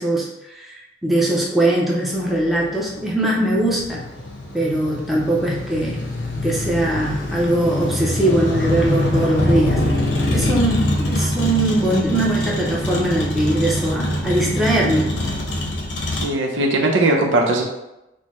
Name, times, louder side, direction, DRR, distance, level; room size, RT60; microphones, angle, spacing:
voice 1, 0.0-4.0 4.5-6.0 6.4-9.9 10.3-15.1, right 1 dB, ahead, -4 dB, 0.6 m, -21 dB
Motor vehicle (road), 2.2-16.2, left 1 dB, 80° left, 0.9 m, -24 dB
voice 2, 16.2-17.6, right 2 dB, 80° right, 0 dB, 0.7 m, -19 dB
6.2 x 2.2 x 3.0 m, 0.91 s
head